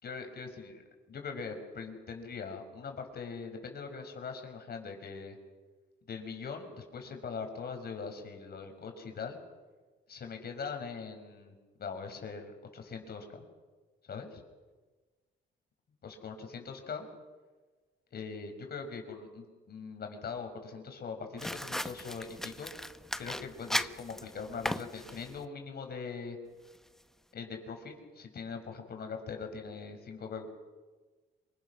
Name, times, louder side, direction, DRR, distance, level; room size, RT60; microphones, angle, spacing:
voice 1, 0.0-0.8 1.1-5.4 6.1-9.4 10.1-13.4 14.1-14.4 16.0-17.1 18.1-22.7 23.2-26.4 27.3-30.5, left 5 dB, 55° left, 5 dB, 5.8 m, -41 dB
sound 1, 21.4-25.5, equal, ahead, 0.9 m, -37 dB
26.5 x 24.0 x 6.4 m, 1.3 s
cardioid pair, 90°, 20 cm